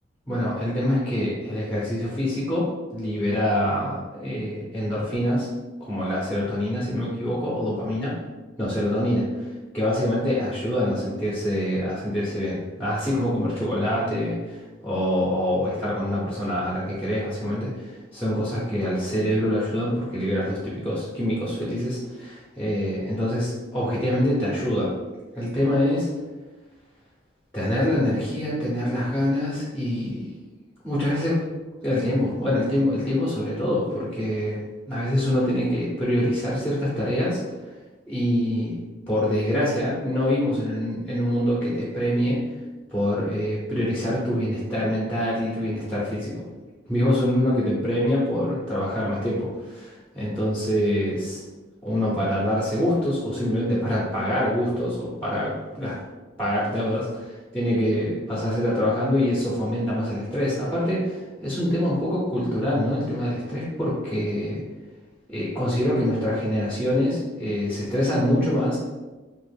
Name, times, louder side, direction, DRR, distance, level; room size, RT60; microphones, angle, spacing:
voice 1, 0.3-5.5 5.8-8.2 8.6-9.5 9.7-24.9 25.3-26.1 27.5-30.3 30.8-31.3 31.8-37.7 38.1-38.8 39.1-42.5 42.9-46.4 46.9-51.4 51.8-56.0 56.4-64.6 65.3-68.8, left 1 dB, 5° left, -7 dB, 0.6 m, -25 dB
3.0 x 2.4 x 3.4 m, 1.2 s
head